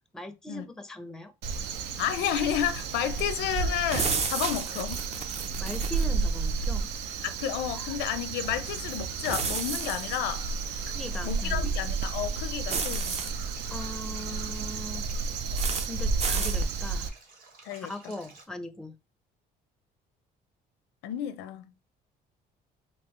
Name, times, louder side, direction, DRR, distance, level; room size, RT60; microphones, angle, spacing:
voice 1, 0.1-1.3 5.6-7.0 7.7-7.9 10.9-11.7 13.7-15.1 15.9-17.1 17.8-19.0, left 1 dB, 5° left, 0.5 m, -40 dB
Crow, 1.4-17.1, right 4 dB, 85° right, 0.5 m, -32 dB
voice 2, 2.0-5.1 7.2-10.5 11.2-13.2 17.6-17.9 21.0-21.6, left 10 dB, 90° left, 0.5 m, -31 dB
sound 1, 3.9-6.1 9.2-10.2 12.7-13.3 15.6-15.9 16.2-16.6, right 5 dB, 40° right, 0.6 m, -31 dB
Stream, 8.4-18.4, right 3 dB, 60° right, 1.3 m, -52 dB
3.7 x 2.6 x 3.1 m
cardioid pair, 110°, 17 cm